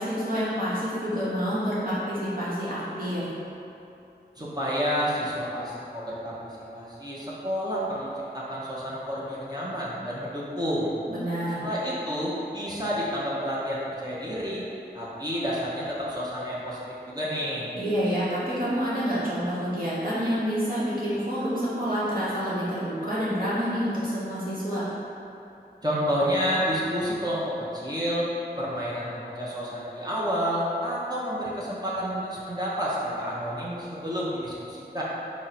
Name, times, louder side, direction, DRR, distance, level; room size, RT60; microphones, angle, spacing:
voice 1, 0.0-3.2 11.1-11.7 17.8-24.8, equal, 55° right, -11 dB, 1.0 m, -28 dB
voice 2, 4.4-6.4 6.7-8.1 8.3-10.9 11.6-14.6 14.9-16.8 17.1-17.7 25.8-27.4 27.7-28.3 28.6-35.0, equal, 25° right, -7 dB, 0.6 m, -29 dB
4.1 x 2.0 x 4.0 m, 2.8 s
wide cardioid pair, 40°, 18 cm